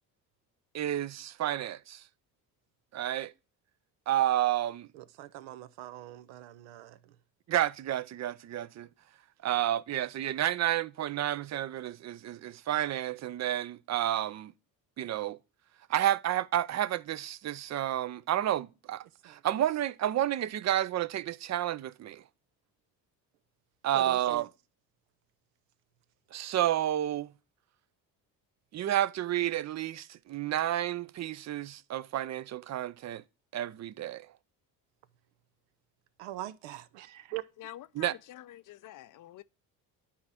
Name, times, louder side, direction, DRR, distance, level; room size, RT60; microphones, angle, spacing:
voice 1, 0.7-2.0 2.9-3.3 4.1-4.9 7.5-8.9 9.4-14.5 15.0-15.4 15.9-22.2 23.8-24.5 26.3-27.3 28.7-33.2 33.5-34.3 38.0-38.1, right 12 dB, 40° right, 0.5 m, -30 dB
voice 2, 4.9-7.2 19.2-19.4 23.9-24.5 36.2-37.4, right 15 dB, 80° right, 0.7 m, -42 dB
voice 3, 37.6-39.4, left 13 dB, 45° left, 0.5 m, -48 dB
10.5 x 4.2 x 3.5 m
hypercardioid pair, 60°, 44 cm